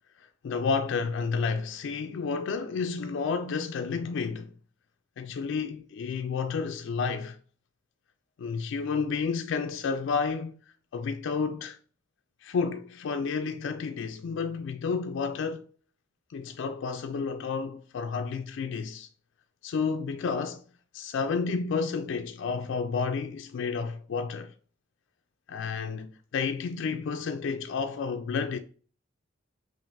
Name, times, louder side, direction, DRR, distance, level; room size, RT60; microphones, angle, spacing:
voice 1, 0.2-4.5 5.2-7.4 8.4-10.5 10.9-11.8 12.4-15.7 16.3-19.1 19.6-20.6 20.9-24.5 25.5-28.6, left 5 dB, 65° left, 0.3 m, -31 dB
5.7 x 2.5 x 2.5 m
head